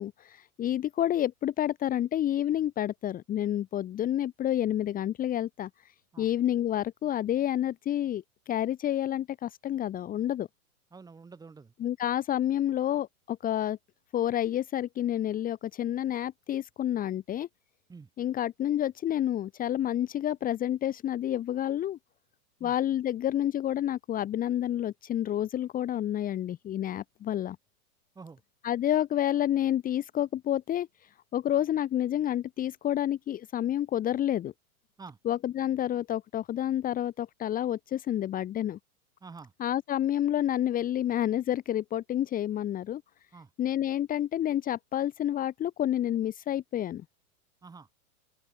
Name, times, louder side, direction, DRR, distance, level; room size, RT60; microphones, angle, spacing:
voice 1, 0.0-5.7 6.2-10.5 11.8-13.8 14.1-17.5 18.2-22.0 22.6-27.6 28.6-34.5 35.2-38.8 39.6-43.0 43.6-47.0, left 11 dB, 20° left, 2.5 m, -29 dB
voice 2, 10.9-11.7 17.9-18.1 22.6-22.7 28.1-28.4 35.0-35.2 39.2-39.5 43.3-43.5 47.6-47.9, right 4 dB, 10° right, 4.2 m, -47 dB
open air
hypercardioid pair, 155°, 44 cm